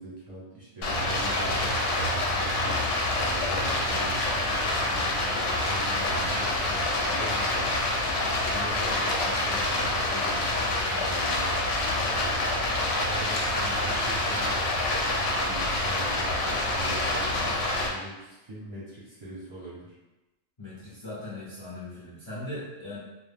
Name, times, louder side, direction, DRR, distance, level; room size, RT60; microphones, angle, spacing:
voice 1, 0.0-7.9 8.5-20.0, equal, 35° right, -10 dB, 0.6 m, -43 dB
Stream, 0.8-17.9, left 2 dB, 70° left, 0.9 m, -27 dB
voice 2, 20.6-23.0, left 1 dB, 40° left, -9 dB, 0.4 m, -39 dB
2.3 x 2.1 x 3.3 m, 1.0 s
omnidirectional pair, 1.4 m